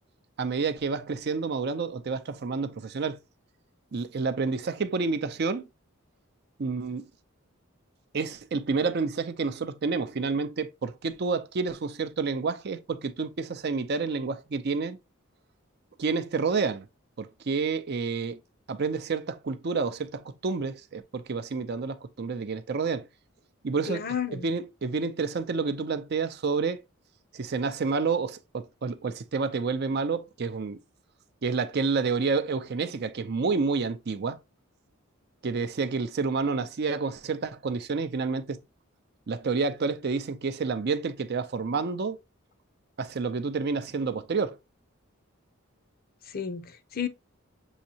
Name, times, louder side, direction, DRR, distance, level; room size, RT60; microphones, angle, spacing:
voice 1, 0.4-3.2 3.9-5.7 6.6-7.0 8.1-15.0 16.0-16.9 17.2-18.4 18.7-23.1 23.6-24.1 24.3-26.8 27.3-30.8 31.4-34.4 35.4-38.6 39.3-42.2 43.0-44.6, right 4 dB, 50° right, 0.5 m, -29 dB
voice 2, 23.9-24.5 46.2-47.1, left 7 dB, 45° left, 0.6 m, -32 dB
7.1 x 2.7 x 2.8 m
head